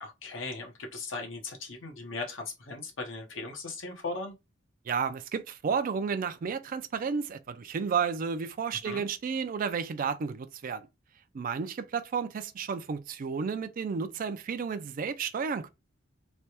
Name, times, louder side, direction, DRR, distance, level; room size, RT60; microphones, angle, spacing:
voice 1, 0.0-4.3 8.8-9.0, left 3 dB, 65° left, 0.9 m, -38 dB
voice 2, 4.9-10.9 11.3-15.7, right 6 dB, 40° right, 0.3 m, -32 dB
3.2 x 2.2 x 2.8 m
head